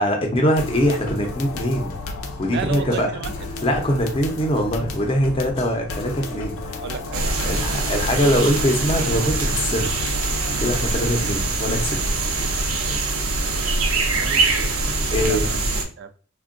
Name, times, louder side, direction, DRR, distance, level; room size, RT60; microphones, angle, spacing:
voice 1, 0.0-2.0 2.4-3.1 3.6-6.8 7.4-10.0 10.6-12.0 15.1-15.5, equal, 25° left, 0.6 m, -22 dB
sound 1, 0.6-11.2, left 2 dB, 90° left, 0.6 m, -33 dB
voice 2, 2.5-3.5 6.7-7.9 14.1-14.7 15.2-15.6 16.0-16.1, right 7 dB, 55° right, 0.4 m, -33 dB
sound 2, 7.1-15.8, right 3 dB, 85° right, 0.7 m, -23 dB
3.5 x 2.2 x 2.5 m
head